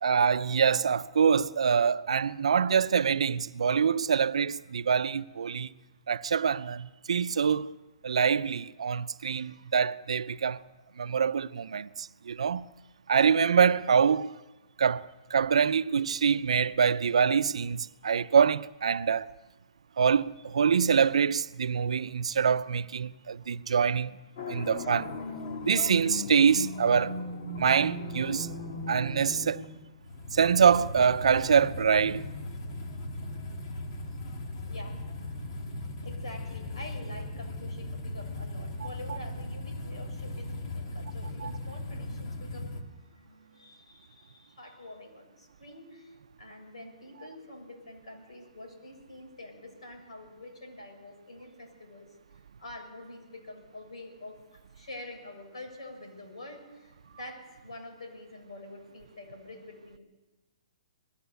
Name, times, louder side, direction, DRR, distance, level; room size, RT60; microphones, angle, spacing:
voice 1, 0.0-5.7 6.1-7.7 8.0-10.6 11.0-12.7 13.1-14.3 14.8-15.0 15.3-19.3 20.0-24.1 24.5-25.1 25.6-27.2 27.6-28.5 28.9-29.6 30.3-32.2 41.4-41.5, right 6 dB, 80° right, 0.6 m, -25 dB
sound 1, 24.4-42.8, left 2 dB, 55° left, 2.4 m, -38 dB
voice 2, 34.7-35.0 36.0-52.1 52.6-60.0, left 2 dB, 80° left, 7.1 m, -46 dB
21.0 x 15.5 x 8.2 m
hypercardioid pair, 140°, 3 cm